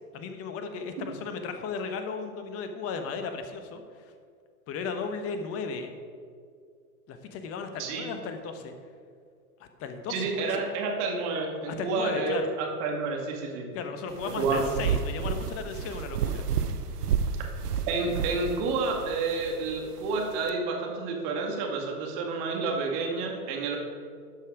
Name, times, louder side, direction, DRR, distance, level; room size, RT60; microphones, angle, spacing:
voice 1, 0.1-4.1 4.7-5.9 7.1-8.7 9.6-10.6 11.7-12.5 13.7-16.4, left 5 dB, 30° left, 7 dB, 1.0 m, -35 dB
voice 2, 10.1-13.7 14.4-14.7 17.9-23.8, right 4 dB, 45° right, 1 dB, 2.0 m, -29 dB
sound 1, 14.1-20.5, right 7 dB, 85° right, 0.7 m, -32 dB
12.0 x 5.5 x 5.1 m, 2.2 s
hypercardioid pair, 105°, 46 cm